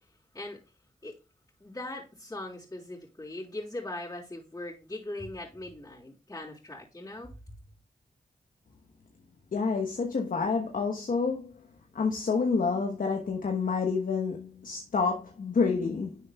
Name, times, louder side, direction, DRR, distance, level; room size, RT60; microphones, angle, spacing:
voice 1, 1.6-7.3, left 1 dB, 20° left, 3.6 m, -40 dB
voice 2, 9.5-11.5 11.9-16.2, left 5 dB, 60° left, 1.1 m, -28 dB
11.0 x 6.3 x 2.3 m
supercardioid pair, 40°, 16 cm